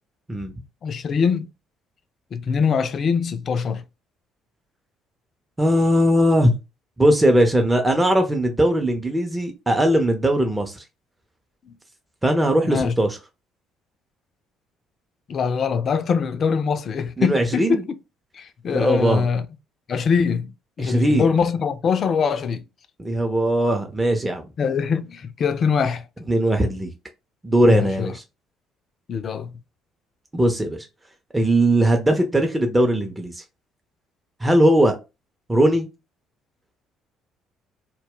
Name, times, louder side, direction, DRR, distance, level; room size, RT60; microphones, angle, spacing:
voice 1, 0.8-1.5 2.3-3.8 11.7-11.8 12.6-12.9 15.3-17.8 18.3-19.5 19.9-20.5 20.8-22.6 24.6-26.1 27.6-28.1 29.1-29.5, left 6 dB, 45° left, 0.3 m, -23 dB
voice 2, 5.6-6.6 7.0-10.8 12.2-13.1 17.2-17.8 18.7-19.2 20.8-21.3 23.0-24.4 26.3-26.9 27.4-28.1 30.3-30.9 31.3-33.4 34.4-35.0 35.5-35.9, right 1 dB, 15° right, 0.5 m, -19 dB
2.2 x 2.1 x 3.5 m
figure-of-eight pair, 50°, 0 cm